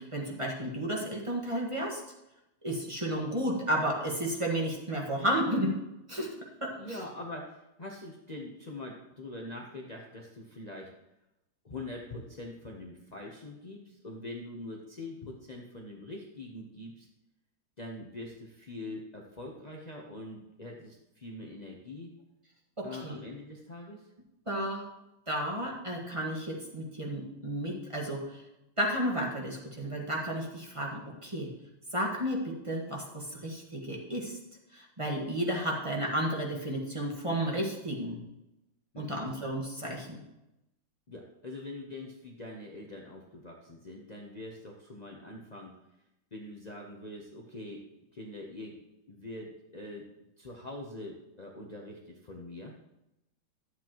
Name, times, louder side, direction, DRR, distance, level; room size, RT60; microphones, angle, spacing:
voice 1, 0.0-2.0 2.6-5.7 6.1-6.3 6.6-7.0 22.8-23.2 24.5-24.9 25.3-28.4 28.8-31.5 31.9-34.3 34.7-38.2 38.9-40.2, equal, 15° right, -2 dB, 1.4 m, -32 dB
voice 2, 6.7-10.9 11.6-17.1 17.8-22.1 22.8-24.1 38.9-39.2 41.1-45.7 46.3-47.9 48.1-48.8 49.1-50.1 50.4-52.8, left 2 dB, 55° left, -1 dB, 0.4 m, -43 dB
11.5 x 7.9 x 3.0 m, 0.90 s
omnidirectional pair, 2.2 m